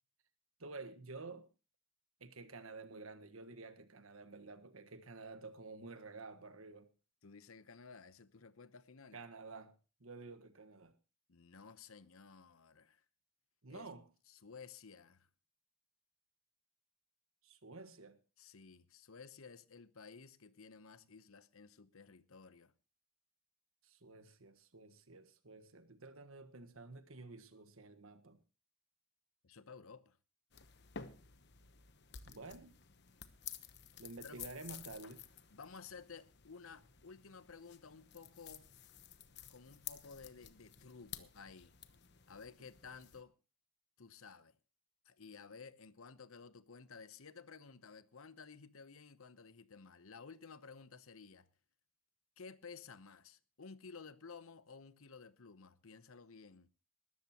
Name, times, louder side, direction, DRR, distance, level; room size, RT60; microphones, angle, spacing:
voice 1, 0.6-1.5 2.2-6.9 9.1-10.9 13.6-14.1 17.4-18.2 23.8-28.4 32.3-32.8 34.0-35.2, right 3 dB, 75° right, 1.5 m, -51 dB
voice 2, 7.2-9.2 11.3-13.0 13.7-13.9 14.3-15.3 18.4-22.7 29.4-30.2 34.2-34.4 35.5-38.7 39.5-41.7 42.3-43.3 44.0-44.6 45.0-51.5 52.4-56.7, left 5 dB, 80° left, 0.9 m, -54 dB
sound 1, 30.5-43.2, left 8 dB, 50° left, 1.0 m, -53 dB
20.5 x 13.0 x 2.9 m
head